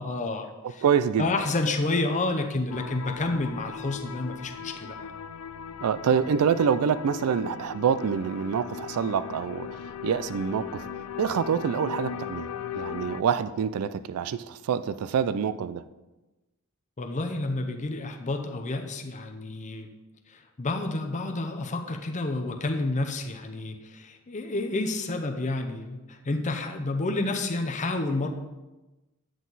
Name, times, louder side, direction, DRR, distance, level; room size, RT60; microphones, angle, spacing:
voice 1, 0.0-0.8 1.2-5.1 17.0-19.9 20.3-28.3, left 2 dB, 35° left, 4 dB, 0.7 m, -30 dB
voice 2, 0.8-1.3 5.8-10.9 11.2-12.5 12.7-15.8, right 7 dB, 80° right, 14 dB, 0.4 m, -26 dB
sound 1, 2.7-13.2, left 7 dB, 75° left, 0.4 m, -38 dB
9.2 x 6.3 x 4.0 m, 1.1 s
head